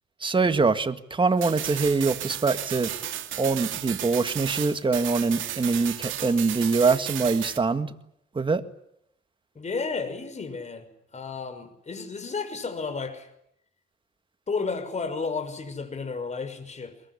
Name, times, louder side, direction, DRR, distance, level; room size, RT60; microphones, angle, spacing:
voice 1, 0.2-2.9 3.4-7.9 8.4-8.6, right 4 dB, 25° right, 9 dB, 1.9 m, -24 dB
sound 1, 1.4-7.6, right 12 dB, 80° right, 2.7 m, -34 dB
voice 2, 9.5-13.3 14.5-17.0, left 4 dB, 35° left, 9 dB, 6.0 m, -32 dB
22.5 x 22.5 x 10.0 m, 0.75 s
cardioid pair, 90°, 20 cm